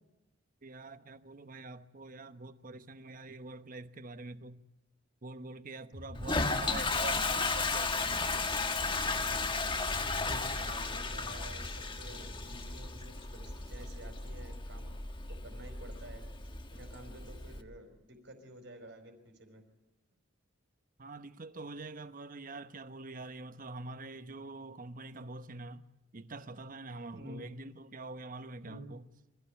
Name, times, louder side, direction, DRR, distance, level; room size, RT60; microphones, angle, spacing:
voice 1, 0.6-4.6 5.2-8.5 21.0-25.8 26.1-29.0, right 2 dB, 45° right, 1.0 m, -45 dB
sound 1, 5.9-13.2 13.5-13.9, equal, 20° right, 4.2 m, -51 dB
Toilet flush, 6.1-17.6, left 3 dB, 25° left, 1.3 m, -34 dB
voice 2, 6.2-6.6 10.2-15.0 15.3-16.3 16.7-19.6 27.1-27.5 28.6-28.8, right 1 dB, 60° right, 5.0 m, -50 dB
26.0 x 15.5 x 9.0 m
head